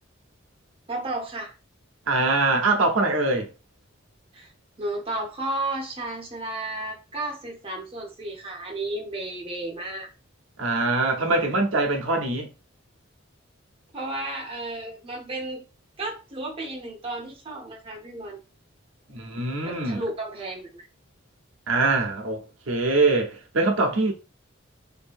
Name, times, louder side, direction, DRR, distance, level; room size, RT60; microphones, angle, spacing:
voice 1, 0.9-1.5 4.3-4.5 4.8-10.1 13.9-15.6 16.0-18.4 19.6-20.8, right 2 dB, 25° right, 0.8 m, -33 dB
voice 2, 2.1-3.5 10.6-12.5 19.1-20.0 21.7-24.1, right 3 dB, 85° right, 0.7 m, -23 dB
2.6 x 2.6 x 2.5 m
head